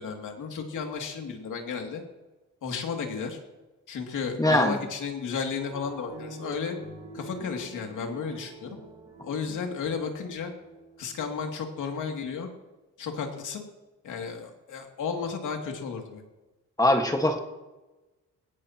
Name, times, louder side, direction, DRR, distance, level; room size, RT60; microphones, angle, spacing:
voice 1, 0.0-2.0 2.6-3.4 3.9-6.7 7.1-8.8 9.2-10.5 11.0-12.5 13.0-13.6 14.0-16.2, left 5 dB, 70° left, 2 dB, 2.7 m, -33 dB
voice 2, 4.4-4.8 16.8-17.4, left 1 dB, 10° left, 3 dB, 1.6 m, -22 dB
sound 1, 5.6-11.1, right 1 dB, 20° right, 3.7 m, -45 dB
20.0 x 17.5 x 3.0 m, 1.1 s
wide cardioid pair, 155°, 32 cm